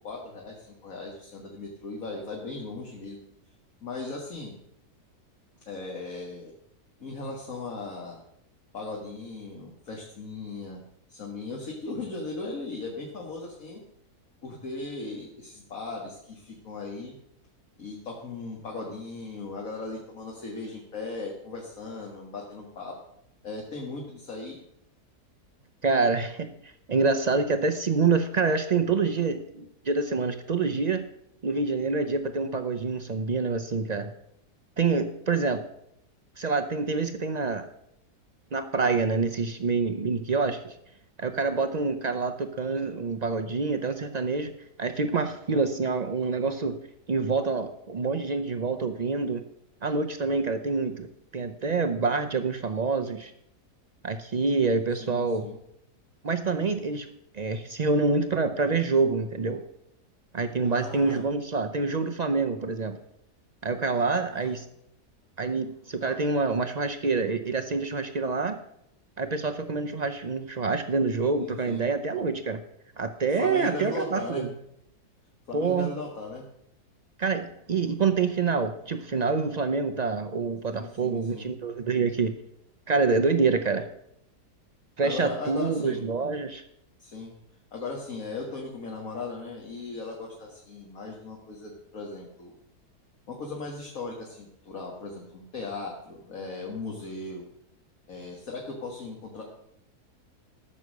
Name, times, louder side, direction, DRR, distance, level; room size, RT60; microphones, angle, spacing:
voice 1, 0.0-3.2 3.8-4.5 5.7-6.5 7.0-8.2 8.7-10.8 11.1-13.8 14.4-17.2 17.8-22.9 23.4-24.6 55.0-55.6 60.6-61.3 64.3-64.5 66.1-66.2 71.4-71.9 73.3-74.5 75.5-76.5 80.7-81.5 85.0-86.0 87.0-87.3 87.7-92.5 93.3-97.5 98.1-99.4, left 3 dB, 55° left, -1 dB, 2.0 m, -37 dB
voice 2, 25.8-31.0 31.4-34.1 34.8-35.6 36.4-37.7 38.5-40.7 41.2-44.5 44.8-46.8 47.1-49.4 49.8-53.3 54.0-55.5 56.2-57.1 57.3-59.6 60.3-63.0 63.6-64.7 65.4-68.6 69.2-72.6 73.0-74.5 75.5-75.9 77.2-82.3 82.9-83.9 85.0-86.6, right 4 dB, 75° right, 8 dB, 0.3 m, -26 dB
14.0 x 6.5 x 6.4 m, 0.75 s
omnidirectional pair, 1.7 m